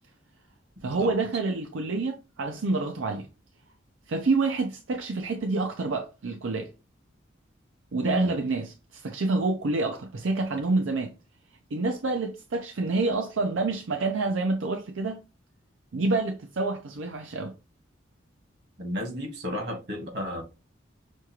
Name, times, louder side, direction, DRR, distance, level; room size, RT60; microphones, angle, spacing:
voice 1, 0.8-3.3 4.1-6.7 7.9-11.1 11.7-15.2 15.9-17.5, right 3 dB, 80° right, 0.5 m, -28 dB
voice 2, 18.8-20.4, left 1 dB, 55° right, 1.4 m, -32 dB
6.2 x 2.4 x 2.8 m
head